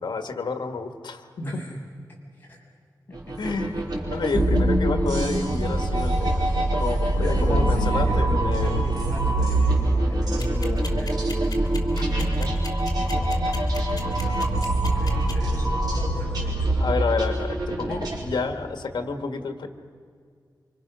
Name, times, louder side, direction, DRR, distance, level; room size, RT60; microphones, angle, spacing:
voice 1, 0.0-1.6 3.4-3.7 4.1-8.8 11.9-12.5 13.4-13.7 16.8-19.7, left 4 dB, 80° left, 6 dB, 1.7 m, -30 dB
voice 2, 1.4-1.7 2.5-2.6 3.1-3.4 7.2-12.3 13.0-13.4 14.2-16.8 17.9-18.1, left 1 dB, 25° left, -3 dB, 7.4 m, -35 dB
sound 1, 3.1-18.2, right 2 dB, 60° right, 5.0 m, -26 dB
sound 2, 4.3-16.4, right 1 dB, 10° right, 3.6 m, -27 dB
sound 3, 10.4-15.3, left 3 dB, 55° left, 3.3 m, -37 dB
29.5 x 25.5 x 6.3 m, 2.1 s
wide cardioid pair, 135°, 8 cm